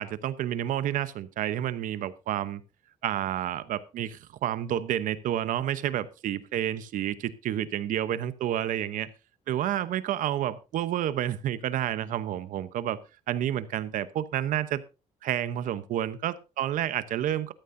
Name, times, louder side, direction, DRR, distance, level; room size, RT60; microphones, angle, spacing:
voice 1, 0.0-2.6 3.0-9.1 9.5-13.0 13.3-14.8 15.2-17.5, right 11 dB, 85° right, 0.9 m, -30 dB
14.5 x 13.5 x 2.7 m
cardioid pair, 150°, 13 cm